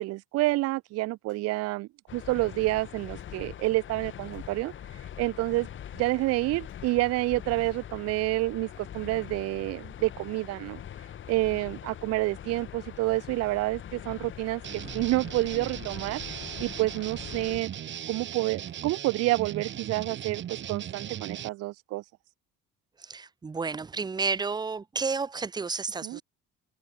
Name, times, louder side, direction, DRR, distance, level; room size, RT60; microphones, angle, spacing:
voice 1, 0.0-4.7 5.2-5.7 5.9-10.8 11.3-16.2 16.6-17.7 18.1-22.0 26.0-26.2, right 19 dB, 55° right, 0.5 m, -28 dB
sound 1, 1.3-1.6 2.2-2.5 3.2-3.6 4.3-4.7 5.5-5.9 6.7-7.0 7.6-8.2 8.7-9.1 9.4-9.9 10.7-11.0 11.3-11.6 12.2-12.5 13.2-13.5 14.5-14.8 15.6-15.9 16.7-17.0 17.7-18.0 18.7-19.0 19.6-19.9, left 21 dB, 90° left, 7.6 m, -68 dB
sound 2, 2.1-17.6, left 10 dB, 40° left, 1.8 m, -43 dB
sound 3, 14.6-21.5, right 10 dB, 40° right, 1.4 m, -38 dB
voice 2, 23.0-26.2, right 4 dB, 15° right, 0.7 m, -31 dB
cardioid pair, 145°, 30 cm